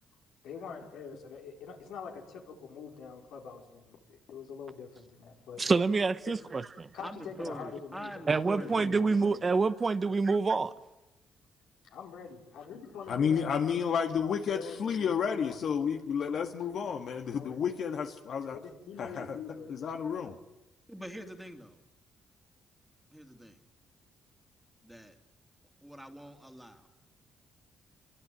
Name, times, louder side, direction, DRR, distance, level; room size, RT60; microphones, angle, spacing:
voice 1, 0.4-5.6 6.3-6.4 6.9-9.3 11.8-13.8 14.2-15.6 15.9-16.0 17.3-17.8 18.5-20.1, left 6 dB, 85° left, 4.6 m, -45 dB
voice 2, 5.6-6.9 8.3-10.7, right 4 dB, 35° right, 1.0 m, -27 dB
voice 3, 7.0-9.3 20.9-21.8 23.1-23.6 24.8-25.2 25.8-26.8, equal, 5° right, 2.7 m, -44 dB
voice 4, 13.1-18.6 19.0-19.4 19.7-20.4, left 7 dB, 65° left, 1.8 m, -31 dB
27.0 x 22.5 x 9.2 m
cardioid pair, 90°, 0 cm